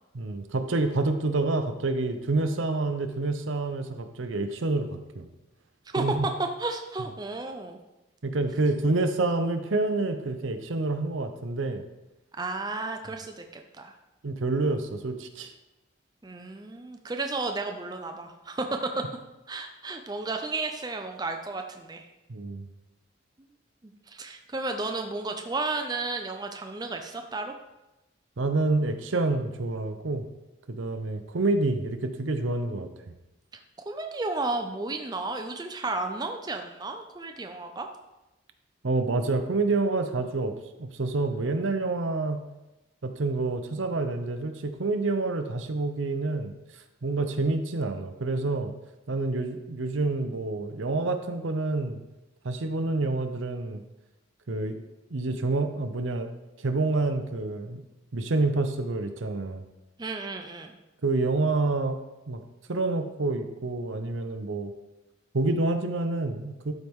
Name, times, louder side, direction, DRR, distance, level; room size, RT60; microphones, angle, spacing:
voice 1, 0.1-5.3 6.0-6.3 8.2-11.8 14.2-15.5 22.3-22.7 28.4-30.2 30.7-32.9 38.8-40.5 40.8-42.4 43.0-46.5 47.0-48.7 49.1-52.0 52.4-53.8 54.5-54.8 55.1-56.3 56.6-57.8 58.1-59.6 61.0-62.0 62.3-62.4 62.7-64.7 65.3-66.7, right 3 dB, 75° right, 7 dB, 0.7 m, -28 dB
voice 2, 5.9-7.8 12.4-14.0 16.2-18.7 19.5-22.1 23.8-27.5 33.9-37.9 60.0-60.8, right 3 dB, 20° right, 4 dB, 0.5 m, -33 dB
12.0 x 4.7 x 3.6 m, 0.99 s
head